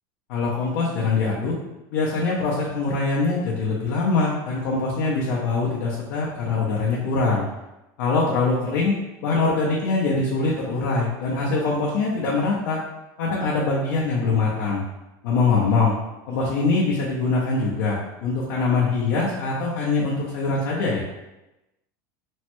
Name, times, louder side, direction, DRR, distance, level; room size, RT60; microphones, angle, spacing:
voice 1, 0.3-1.6 1.9-7.4 8.0-8.9 9.2-12.8 13.2-14.8 15.2-15.9 16.3-21.0, left 3 dB, 70° left, -5 dB, 0.7 m, -23 dB
3.1 x 2.1 x 3.0 m, 0.98 s
supercardioid pair, 145°, 11 cm